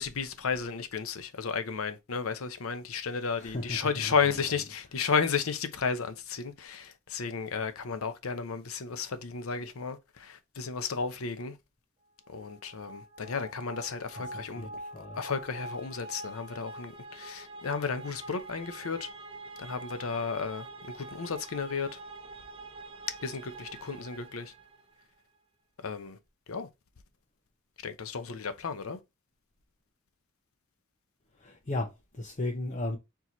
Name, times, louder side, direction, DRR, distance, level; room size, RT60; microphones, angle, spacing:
voice 1, 0.0-11.6 12.3-14.7 15.1-19.1 19.6-22.0 23.2-24.5 25.8-26.2 26.5-26.7 27.8-29.0, left 5 dB, 90° left, 0.7 m, -33 dB
voice 2, 3.4-4.4 14.3-15.2 31.3-33.0, left 2 dB, 35° left, 0.7 m, -36 dB
sound 1, 12.2-25.0, right 2 dB, 25° right, 0.5 m, -45 dB
4.6 x 2.9 x 3.9 m
head